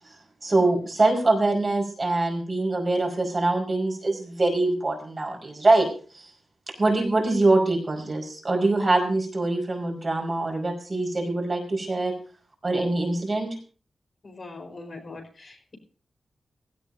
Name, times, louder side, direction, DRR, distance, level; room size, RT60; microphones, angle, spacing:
voice 1, 0.4-5.9 6.1-6.3 6.7-12.1 12.6-13.6, right 2 dB, 30° right, 1 dB, 5.3 m, -24 dB
voice 2, 14.2-15.8, left 3 dB, 40° left, 3 dB, 4.7 m, -42 dB
17.0 x 17.0 x 2.8 m, 0.39 s
wide cardioid pair, 140°, 0 cm